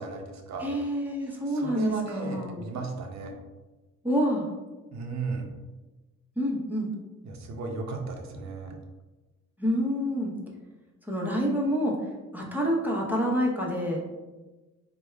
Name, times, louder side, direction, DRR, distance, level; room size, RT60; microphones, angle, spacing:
voice 1, 0.0-0.7 1.5-3.3 4.9-5.5 7.2-8.8, right 3 dB, 65° right, 3 dB, 0.7 m, -35 dB
voice 2, 0.6-2.6 4.0-4.5 6.4-6.9 9.6-10.3 11.1-12.0 12.3-14.0, equal, 5° right, -2 dB, 0.8 m, -27 dB
3.4 x 2.2 x 3.3 m, 1.2 s
cardioid pair, 90°, 30 cm